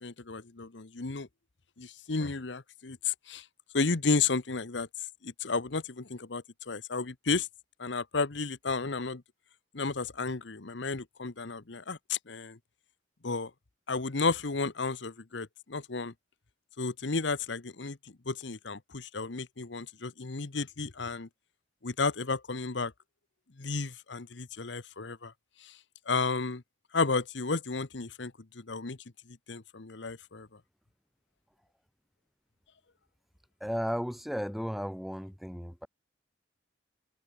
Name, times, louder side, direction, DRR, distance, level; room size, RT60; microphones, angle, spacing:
voice 1, 0.0-1.3 1.8-3.4 3.7-4.9 5.2-7.5 7.8-9.2 9.7-12.6 13.2-13.5 13.9-16.1 16.8-18.0 18.3-21.3 21.8-22.9 23.6-25.3 25.6-25.8 26.1-26.6 26.9-29.0 29.3-30.5, left 4 dB, 70° left, 1.1 m, -32 dB
voice 2, 33.6-35.9, equal, ahead, 2.5 m, -34 dB
head